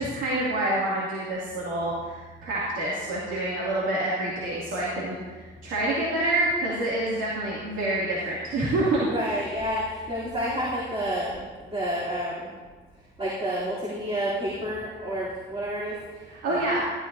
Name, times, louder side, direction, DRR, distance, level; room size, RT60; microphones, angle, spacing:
voice 1, 0.0-9.1 16.3-16.8, right 1 dB, 90° right, -6 dB, 2.6 m, -27 dB
voice 2, 9.1-12.5 13.2-16.6, equal, 30° right, -8 dB, 3.3 m, -30 dB
14.0 x 13.0 x 2.7 m, 1.4 s
cardioid pair, 90°, 20 cm